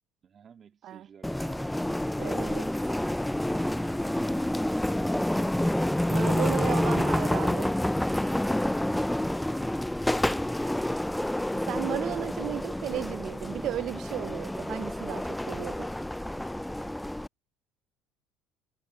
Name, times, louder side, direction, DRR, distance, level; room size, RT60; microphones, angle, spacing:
voice 1, 0.2-2.0, right 7 dB, 40° right, 2.9 m, -54 dB
sound 1, 1.2-17.3, left 1 dB, 5° left, 0.3 m, -28 dB
voice 2, 2.2-2.7 3.5-3.8 6.1-7.7 11.6-15.9, right 13 dB, 55° right, 0.6 m, -35 dB
supercardioid pair, 105°, 0 cm